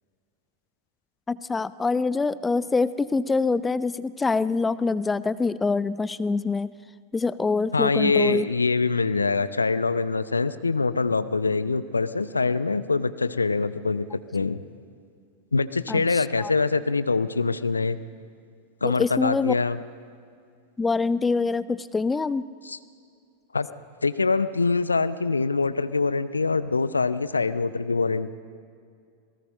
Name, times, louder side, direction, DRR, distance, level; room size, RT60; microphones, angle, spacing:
voice 1, 1.3-6.7 7.1-8.5 15.9-16.5 18.8-19.5 20.8-22.4, left 4 dB, 10° left, 17 dB, 0.5 m, -25 dB
voice 2, 7.7-14.1 14.3-14.6 15.5-18.0 18.8-19.8 22.6-22.8 23.5-23.7 24.0-28.3, left 4 dB, 80° left, 14 dB, 0.7 m, -24 dB
27.0 x 18.5 x 5.5 m, 2.3 s
figure-of-eight pair, 90°, 0 cm